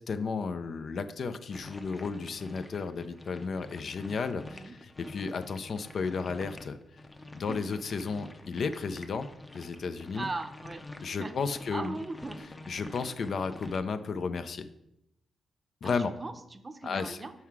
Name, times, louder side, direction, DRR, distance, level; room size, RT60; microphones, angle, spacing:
voice 1, 0.1-4.4 5.1-6.7 7.4-9.2 9.6-10.3 11.0-12.0 12.7-14.6 15.8-16.1 16.8-17.2, left 5 dB, 60° left, 10 dB, 0.5 m, -33 dB
sound 1, 1.5-13.8, left 2 dB, 20° left, 0.7 m, -47 dB
voice 2, 10.2-10.9 11.2-11.4 11.7-12.4 15.8-17.3, right 3 dB, 30° right, 9 dB, 0.6 m, -39 dB
5.6 x 4.7 x 4.7 m, 0.82 s
cardioid pair, 75°, 0 cm